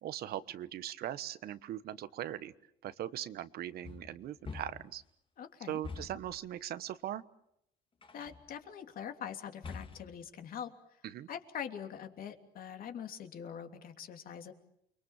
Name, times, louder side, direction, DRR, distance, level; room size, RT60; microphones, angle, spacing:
voice 1, 0.0-2.5 2.8-5.0 5.7-7.2 11.0-11.3, right 12 dB, 65° right, 14 dB, 1.2 m, -40 dB
sound 1, 3.8-5.0 5.8-6.4 8.0-8.5 9.6-10.3, left 4 dB, 30° left, 2.1 m, -46 dB
voice 2, 5.4-5.8 8.1-10.7 11.3-14.5, left 8 dB, 60° left, 5 dB, 3.1 m, -43 dB
29.0 x 23.0 x 7.3 m, 0.75 s
cardioid pair, 110°, 17 cm